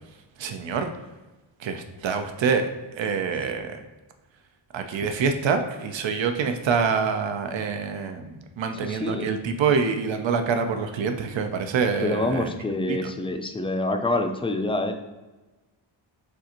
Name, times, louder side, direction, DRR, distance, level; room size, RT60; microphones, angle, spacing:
voice 1, 0.4-0.9 1.6-2.7 2.9-3.8 4.7-12.5 12.9-13.1, right 5 dB, 70° right, 7 dB, 0.6 m, -26 dB
voice 2, 8.8-9.3 12.0-14.9, left 2 dB, 15° left, 6 dB, 0.3 m, -26 dB
6.6 x 2.5 x 2.9 m, 1.1 s
wide cardioid pair, 105°, 48 cm